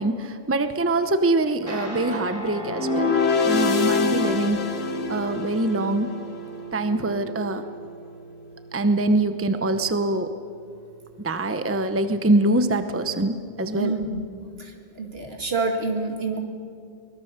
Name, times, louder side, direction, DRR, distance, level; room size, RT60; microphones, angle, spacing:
voice 1, 0.0-4.6 5.1-6.1 6.7-7.6 8.7-10.3 11.2-13.9, right 2 dB, 15° right, 9 dB, 0.8 m, -24 dB
Guitar, 1.6-13.1, right 4 dB, 30° right, 2.7 m, -38 dB
sound 1, 2.7-6.0, left 5 dB, 75° left, 1.4 m, -24 dB
voice 2, 13.8-16.4, right 3 dB, 65° right, 3 dB, 2.4 m, -28 dB
23.5 x 20.5 x 6.7 m, 2.3 s
omnidirectional pair, 1.1 m